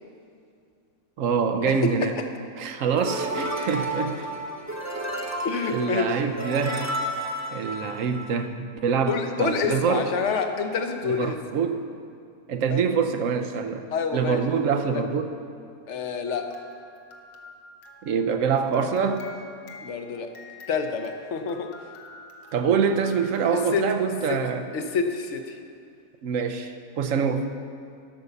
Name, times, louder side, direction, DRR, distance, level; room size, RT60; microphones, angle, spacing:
voice 1, 1.2-2.1 2.6-4.3 5.7-6.9 7.5-10.1 11.0-11.9 12.5-15.3 18.0-19.3 22.5-24.7 26.2-27.5, right 6 dB, 70° right, 6 dB, 1.0 m, -25 dB
sound 1, 3.0-8.5, right 1 dB, 20° right, 0.4 m, -32 dB
voice 2, 5.4-6.1 9.1-11.3 12.7-12.8 13.9-14.4 14.9-15.0 15.9-16.4 19.8-20.3 20.7-21.7 23.5-23.8 24.3-24.4 24.7-25.5, left 5 dB, 60° left, 6 dB, 1.0 m, -27 dB
sound 2, 16.2-24.5, left 3 dB, 75° left, 1.4 m, -48 dB
12.0 x 5.5 x 6.7 m, 2.4 s
omnidirectional pair, 1.5 m